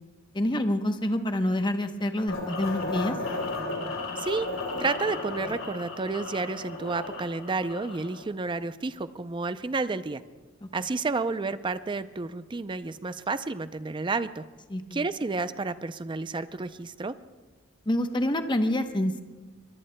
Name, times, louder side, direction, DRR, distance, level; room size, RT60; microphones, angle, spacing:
voice 1, 0.3-3.1 10.6-10.7 14.7-15.0 17.9-19.2, left 1 dB, 25° left, 7 dB, 0.9 m, -27 dB
sound 1, 2.3-8.2, left 2 dB, 85° left, 3.2 m, -34 dB
voice 2, 4.2-4.5 4.8-10.2 10.7-14.4 14.9-17.1, right 3 dB, 25° right, 13 dB, 0.5 m, -31 dB
22.5 x 21.5 x 2.2 m, 1.3 s
head